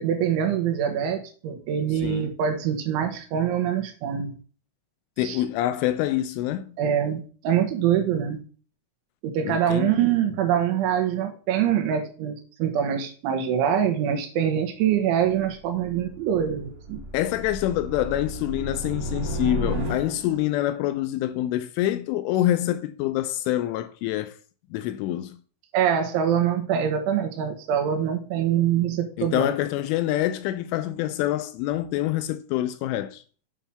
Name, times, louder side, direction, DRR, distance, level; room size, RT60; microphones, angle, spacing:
voice 1, 0.0-4.3 5.2-5.4 6.8-8.4 9.2-17.0 25.7-29.5, right 9 dB, 75° right, 3.4 m, -24 dB
voice 2, 2.0-2.3 5.2-6.9 9.4-9.9 17.1-24.4 24.7-25.4 29.2-33.2, left 13 dB, 85° left, 2.9 m, -26 dB
sound 1, 15.4-20.5, equal, 55° right, 1.6 m, -33 dB
8.8 x 5.5 x 5.8 m
omnidirectional pair, 5.9 m